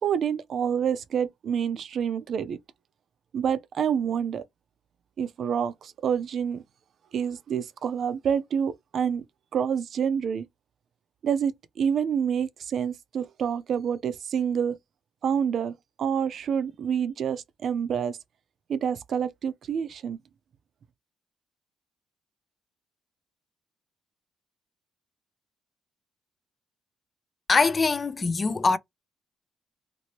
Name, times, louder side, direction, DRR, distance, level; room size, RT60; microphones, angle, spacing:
voice 1, 0.0-2.6 3.3-4.4 5.2-6.6 7.1-9.2 9.5-10.5 11.2-14.8 15.2-18.2 18.7-20.2, right 7 dB, 60° right, 0.5 m, -27 dB
voice 2, 27.5-28.8, left 4 dB, 30° left, 0.4 m, -23 dB
2.9 x 2.6 x 2.8 m
cardioid pair, 90°, 0 cm